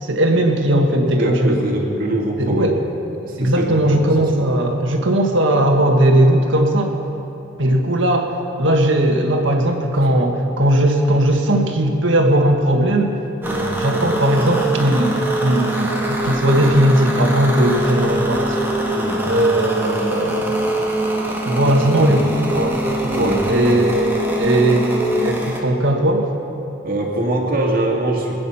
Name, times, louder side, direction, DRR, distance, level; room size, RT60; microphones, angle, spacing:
voice 1, 0.0-1.6 2.4-2.8 3.4-6.9 7.6-13.1 13.8-18.6 19.3-20.5 21.4-22.2 22.5-24.1 24.4-24.9 25.2-26.3, right 1 dB, 65° right, 2 dB, 1.8 m, -18 dB
voice 2, 1.2-2.9 3.2-4.1 4.3-4.6 13.4-13.8 18.9-19.5 21.9-22.3 23.2-23.5 26.8-28.4, right 1 dB, 45° right, -1 dB, 2.4 m, -23 dB
sound 1, 13.4-25.6, right 1 dB, 10° right, 1.6 m, -23 dB
25.5 x 9.9 x 5.7 m, 2.9 s
head